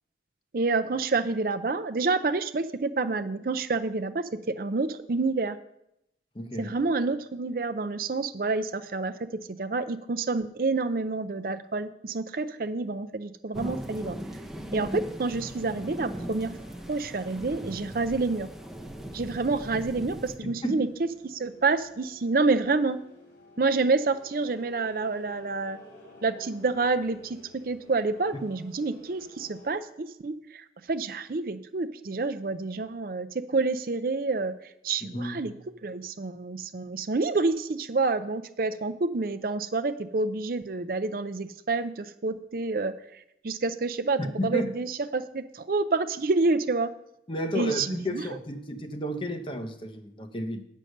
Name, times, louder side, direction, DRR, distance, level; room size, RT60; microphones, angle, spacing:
voice 1, 0.5-5.6 6.6-14.2 14.7-16.5 16.9-18.5 19.1-23.0 23.6-25.8 26.2-27.4 27.6-34.5 34.8-35.5 35.8-42.9 43.4-46.9 47.5-48.2, right 3 dB, 50° right, 9 dB, 0.5 m, -28 dB
voice 2, 6.3-6.7 20.4-20.8 35.1-35.5 44.2-44.7 47.3-50.6, equal, 30° left, 6 dB, 0.8 m, -32 dB
sound 1, 13.5-20.4, right 1 dB, 5° right, 0.7 m, -39 dB
sound 2, 15.2-29.7, equal, 80° left, 4.1 m, -53 dB
9.2 x 6.4 x 6.5 m, 0.80 s
head